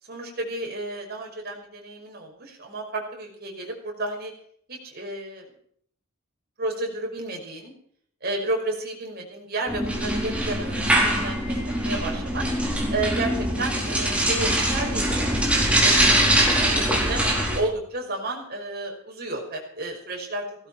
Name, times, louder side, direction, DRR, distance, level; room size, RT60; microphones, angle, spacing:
voice 1, 0.0-4.3 4.7-5.4 6.6-7.7 8.2-12.4 12.9-15.1 15.3-17.2 17.5-20.6, right 2 dB, 45° right, 1 dB, 5.6 m, -32 dB
sound 1, 9.7-17.6, right 1 dB, 5° right, 4.5 m, -23 dB
17.5 x 15.5 x 4.6 m, 0.63 s
head